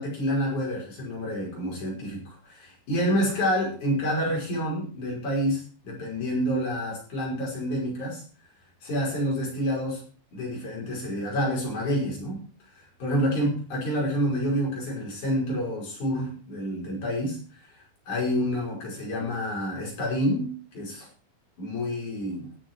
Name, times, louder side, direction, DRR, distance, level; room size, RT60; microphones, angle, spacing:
voice 1, 0.0-8.2 8.8-10.0 10.3-12.4 12.7-21.1 21.6-22.5, equal, 35° left, -3 dB, 6.5 m, -28 dB
17.0 x 7.7 x 4.7 m, 0.39 s
omnidirectional pair, 5.9 m